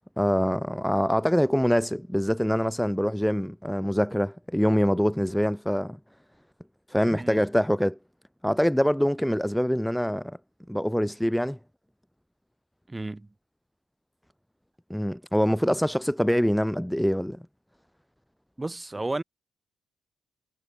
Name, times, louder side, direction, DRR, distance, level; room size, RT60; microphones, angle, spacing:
voice 1, 0.2-6.0 6.9-8.0 8.4-10.4 10.7-11.6 14.9-17.4, equal, ahead, 0.6 m, -24 dB
voice 2, 7.1-7.4 12.9-13.3 18.6-19.2, right 2 dB, 15° right, 1.7 m, -32 dB
cardioid pair, 90°, 0 cm